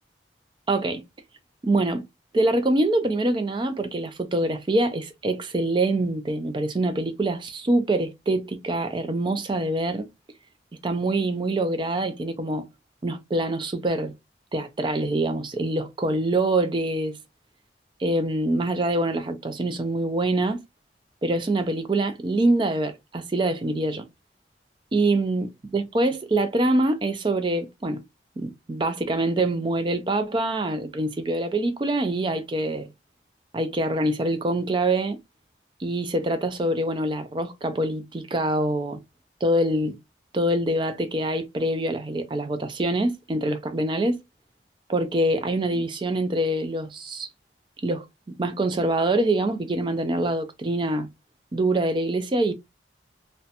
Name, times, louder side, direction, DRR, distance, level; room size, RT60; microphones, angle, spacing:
voice 1, 0.7-1.0 1.6-2.0 2.3-10.1 10.8-12.7 13.0-14.1 14.5-17.2 18.0-20.6 21.2-24.1 24.9-28.0 28.4-32.9 33.5-35.2 35.8-39.0 39.4-40.0 40.3-44.2 44.9-47.3 47.8-51.1 51.5-52.5, right 1 dB, 25° right, 0.4 m, -25 dB
2.8 x 2.1 x 2.4 m
head